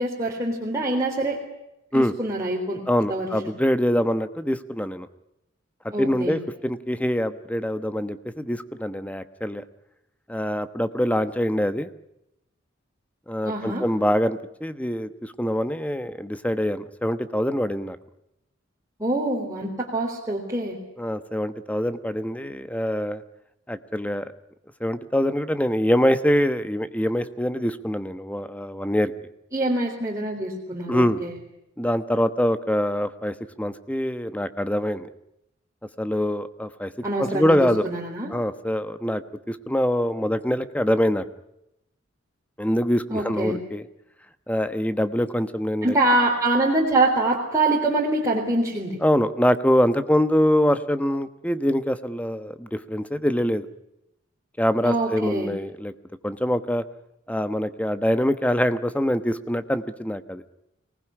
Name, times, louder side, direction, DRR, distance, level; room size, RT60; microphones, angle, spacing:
voice 1, 0.0-1.4 1.9-2.8 3.1-3.3 5.9-6.4 13.4-13.8 19.0-20.8 29.5-31.3 37.0-38.3 43.1-43.6 45.8-49.0 54.8-55.5, right 2 dB, 15° right, -3 dB, 3.9 m, -24 dB
voice 2, 2.9-5.1 5.8-9.6 10.3-11.9 13.3-18.0 21.0-23.2 23.7-24.3 24.8-29.1 30.9-31.2 31.8-35.1 36.0-36.9 37.2-37.9 38.3-39.2 39.5-41.2 42.6-43.8 44.5-46.0 49.0-53.7 54.6-55.9 56.2-56.8 57.3-60.4, equal, 5° left, 12 dB, 1.1 m, -24 dB
25.0 x 19.5 x 9.9 m, 0.85 s
head